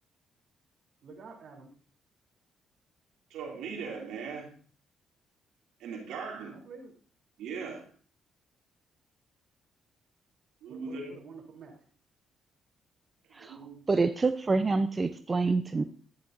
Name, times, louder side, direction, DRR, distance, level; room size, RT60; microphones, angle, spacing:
voice 1, 1.0-1.7 6.5-6.9 10.7-11.8, right 4 dB, 60° right, 3.3 m, -48 dB
voice 2, 3.3-4.5 5.8-6.6 7.4-7.9 10.6-11.2 13.3-13.8, right 5 dB, 90° right, 2.5 m, -39 dB
voice 3, 13.9-15.8, right 3 dB, 30° right, 0.6 m, -27 dB
11.5 x 10.5 x 2.6 m
cardioid pair, 90°, 0 cm